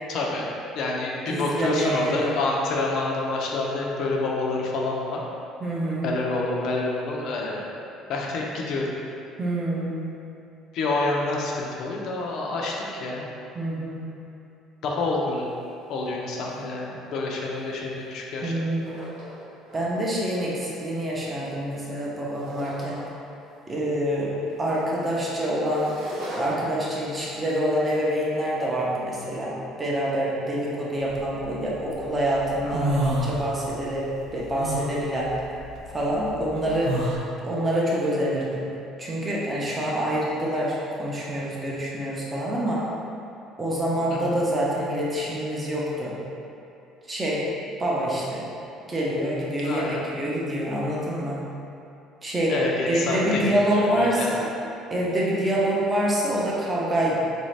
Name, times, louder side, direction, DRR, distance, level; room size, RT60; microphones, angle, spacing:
voice 1, 0.1-0.5 0.7-5.2 6.0-7.6 8.1-8.9 10.7-13.2 14.8-15.5 15.9-18.5 32.6-33.0 44.1-44.4 49.6-50.0 52.5-54.3, left 2 dB, 60° left, -2 dB, 0.5 m, -28 dB
voice 2, 1.3-2.3 5.6-6.1 9.4-10.1 13.5-14.0 18.4-19.1 19.7-23.0 23.7-25.9 26.4-35.3 35.9-37.1 37.4-38.7 39.0-42.8 43.6-46.2 47.1-47.5 47.8-48.4 48.9-51.4 52.2-52.6 52.9-54.5 54.9-57.2, right 1 dB, 20° right, -5 dB, 0.6 m, -26 dB
sound 1, 15.0-15.1 15.3-15.6 16.0-16.8 17.6-18.3 18.7-19.9 20.3-23.4 23.7-28.4, right 1 dB, 90° right, 1.1 m, -41 dB
sound 2, 31.1-31.9 32.3-33.9 34.2-37.2, right 1 dB, 65° right, 0.5 m, -28 dB
3.8 x 2.6 x 3.2 m, 2.7 s
cardioid pair, 145°, 0 cm